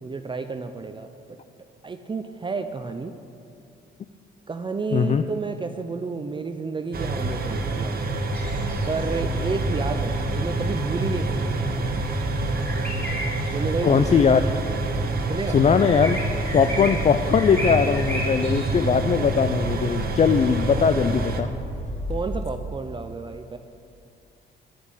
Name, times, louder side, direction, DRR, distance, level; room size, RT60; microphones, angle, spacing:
voice 1, 0.0-1.4 1.8-3.1 4.5-8.1 8.9-11.6 13.5-14.2 15.3-15.6 22.1-23.6, right 4 dB, 25° right, 7 dB, 0.6 m, -31 dB
voice 2, 4.9-5.2 13.8-14.4 15.5-16.2 16.5-21.5, left 6 dB, 35° left, 10 dB, 0.4 m, -20 dB
sound 1, 6.9-21.4, right 2 dB, 50° right, 1.3 m, -27 dB
sound 2, 8.3-22.4, equal, 5° left, 3.1 m, -34 dB
10.5 x 7.1 x 9.0 m, 2.4 s
cardioid pair, 90°, 20 cm